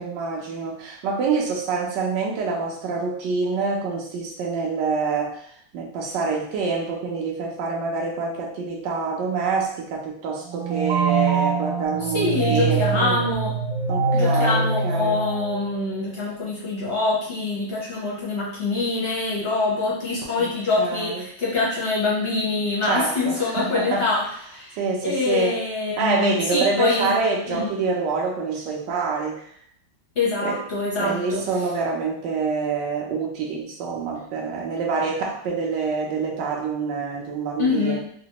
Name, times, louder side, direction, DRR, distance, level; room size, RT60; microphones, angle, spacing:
voice 1, 0.0-5.4 5.7-13.2 13.9-15.2 20.4-20.5 20.8-21.2 22.8-24.1 24.8-25.6 26.0-29.4 30.4-30.6 31.0-38.0, right 4 dB, 70° right, -1 dB, 1.3 m, -26 dB
sound 1, 10.5-15.9, right 4 dB, 85° right, 0.7 m, -24 dB
voice 2, 12.1-13.5 14.1-24.8 25.0-27.1 27.5-27.7 30.2-31.5 37.6-38.0, left 3 dB, 55° left, -6 dB, 0.6 m, -25 dB
4.0 x 2.2 x 2.9 m, 0.62 s
omnidirectional pair, 2.2 m